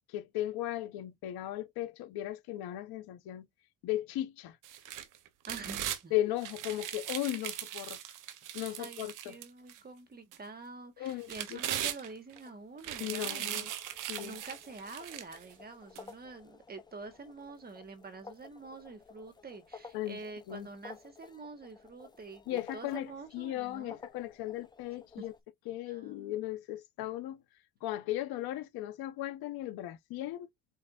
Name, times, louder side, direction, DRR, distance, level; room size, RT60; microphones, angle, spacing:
voice 1, 0.1-3.5 3.8-4.6 6.1-8.0 8.5-9.4 11.0-11.6 13.0-13.7 14.1-14.4 19.9-20.2 20.5-20.7 22.5-25.3 25.7-27.4 27.8-30.5, left 14 dB, 70° left, 1.0 m, -36 dB
sound 1, 4.6-6.0 6.4-9.8 10.3-10.4 11.1-12.4 12.8-15.4 16.0-16.1, right 11 dB, 55° right, 0.8 m, -39 dB
voice 2, 5.5-6.1 8.8-24.0 25.2-25.3 25.9-26.3, right 3 dB, 25° right, 1.3 m, -47 dB
sound 2, 12.4-25.4, left 5 dB, 10° left, 0.6 m, -54 dB
4.4 x 4.0 x 2.4 m
cardioid pair, 120°, 39 cm